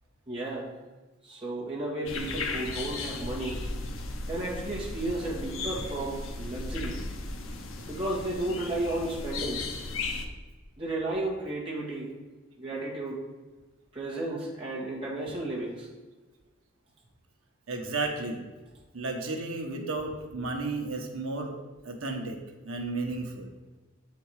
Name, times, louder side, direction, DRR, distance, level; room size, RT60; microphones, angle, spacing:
voice 1, 0.3-0.7 1.2-3.6 4.3-7.0 7.8-9.6 10.8-12.1 12.6-13.2 13.9-15.9, right 2 dB, 25° right, -5 dB, 1.8 m, -33 dB
sound 1, 2.1-10.3, left 3 dB, 70° left, 0.8 m, -36 dB
voice 2, 17.7-18.4 18.9-21.6 21.8-22.4 22.6-23.5, right 3 dB, 80° right, 2 dB, 1.1 m, -33 dB
7.2 x 4.4 x 4.8 m, 1.2 s
head